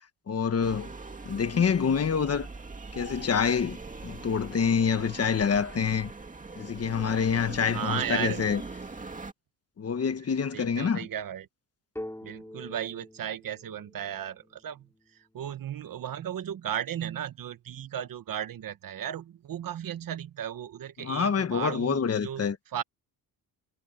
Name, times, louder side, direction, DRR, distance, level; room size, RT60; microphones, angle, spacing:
voice 1, 0.3-0.9 1.2-2.5 2.9-6.1 6.6-8.6 9.8-11.1 21.0-22.6, left 6 dB, 40° left, 1.4 m, -27 dB
sound 1, 0.6-9.3, right 3 dB, 20° right, 2.2 m, -41 dB
voice 2, 7.7-8.4 10.5-11.5 12.2-14.9 15.3-22.5 22.7-22.8, right 10 dB, 60° right, 1.2 m, -35 dB
sound 2, 12.0-15.6, left 1 dB, 5° left, 2.9 m, -45 dB
wide cardioid pair, 140°, 38 cm